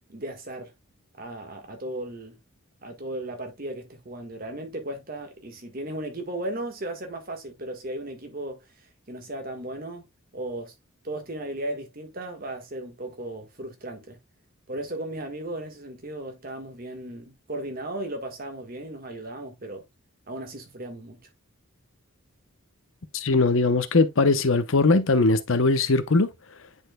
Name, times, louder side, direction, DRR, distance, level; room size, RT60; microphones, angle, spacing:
voice 1, 0.1-0.7 1.2-2.4 2.8-10.1 10.3-10.7 11.0-14.2 14.7-19.8 20.3-21.2, right 1 dB, 45° right, 1.5 m, -36 dB
voice 2, 23.1-26.3, left 3 dB, 70° left, 0.8 m, -20 dB
9.9 x 4.5 x 2.2 m
head